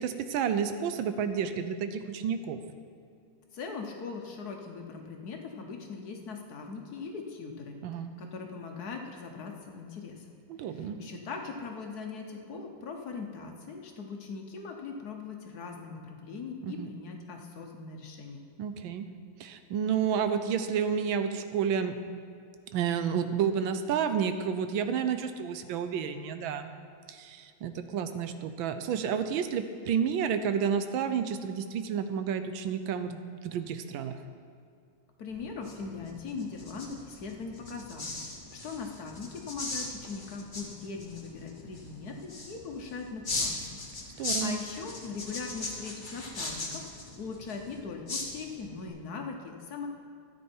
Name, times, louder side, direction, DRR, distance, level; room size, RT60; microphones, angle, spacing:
voice 1, 0.0-2.6 7.8-8.1 10.5-11.0 16.6-16.9 18.6-19.1 19.4-22.0 22.7-26.7 27.1-34.2 44.2-44.6, right 7 dB, 80° right, 9 dB, 1.4 m, -30 dB
voice 2, 3.5-7.8 8.2-10.3 10.6-18.4 35.2-43.8 44.1-49.9, left 4 dB, 60° left, 3 dB, 1.2 m, -40 dB
sound 1, 35.3-48.9, left 2 dB, 30° left, 1.3 m, -39 dB
13.0 x 8.6 x 4.4 m, 2.4 s
omnidirectional pair, 2.2 m